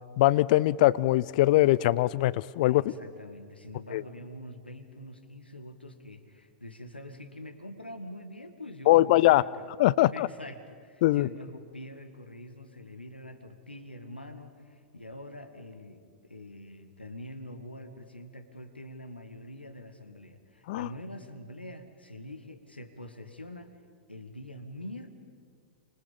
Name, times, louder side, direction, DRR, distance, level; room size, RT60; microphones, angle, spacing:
voice 1, 0.2-2.8 3.9-4.0 8.9-9.4 9.8-10.3 11.0-11.3 20.7-20.9, left 16 dB, 50° left, 19 dB, 0.6 m, -22 dB
voice 2, 2.7-9.7 10.1-23.7 24.1-25.1, left 1 dB, 90° left, 7 dB, 2.1 m, -45 dB
29.0 x 26.0 x 5.3 m, 2.1 s
figure-of-eight pair, 100°, 5 cm